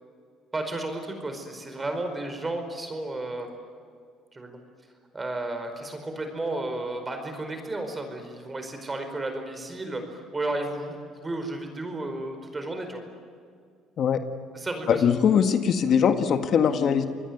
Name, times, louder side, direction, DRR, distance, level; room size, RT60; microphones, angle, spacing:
voice 1, 0.5-3.5 4.3-4.6 5.1-13.0 14.5-15.1, right 2 dB, 20° right, 6 dB, 4.8 m, -33 dB
voice 2, 14.9-17.1, left 7 dB, 55° left, 8 dB, 1.8 m, -21 dB
27.0 x 21.0 x 9.4 m, 2.2 s
cardioid pair, 100°, 0 cm